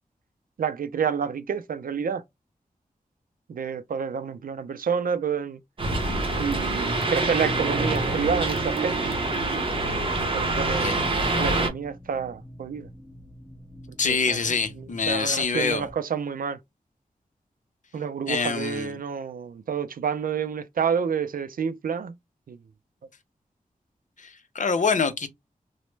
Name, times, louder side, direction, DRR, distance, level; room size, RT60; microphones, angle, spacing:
voice 1, 0.6-2.2 3.5-5.6 6.4-9.1 10.2-11.0 11.4-12.9 14.0-16.6 17.9-22.1 22.5-22.6, right 7 dB, 75° right, 0.4 m, -29 dB
sound 1, 5.8-11.7, right 2 dB, 35° right, 0.8 m, -25 dB
sound 2, 8.3-15.9, equal, 10° left, 1.3 m, -46 dB
voice 2, 14.0-15.9 18.3-19.0 24.2-25.3, left 5 dB, 60° left, 0.5 m, -25 dB
3.0 x 2.1 x 3.1 m
wide cardioid pair, 110°, 15 cm